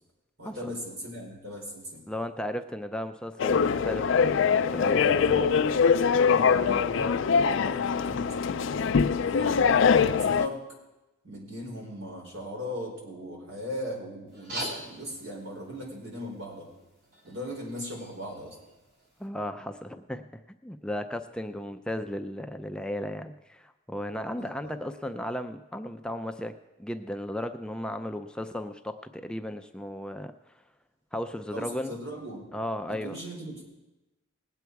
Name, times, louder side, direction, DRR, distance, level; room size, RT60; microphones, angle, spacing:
voice 1, 0.4-2.0 4.8-5.2 6.3-8.5 9.1-10.7 11.2-16.7 17.2-18.6 24.4-24.7 31.5-32.5 32.9-33.6, equal, 80° right, -1 dB, 4.3 m, -39 dB
voice 2, 2.1-5.5 19.2-30.3 31.1-31.9 32.5-33.2, left 1 dB, 5° left, 8 dB, 0.4 m, -35 dB
sound 1, 3.4-10.5, left 6 dB, 65° left, 0.4 m, -23 dB
sound 2, 14.3-19.3, equal, 50° right, 3.2 m, -43 dB
19.5 x 8.2 x 4.6 m, 1.0 s
head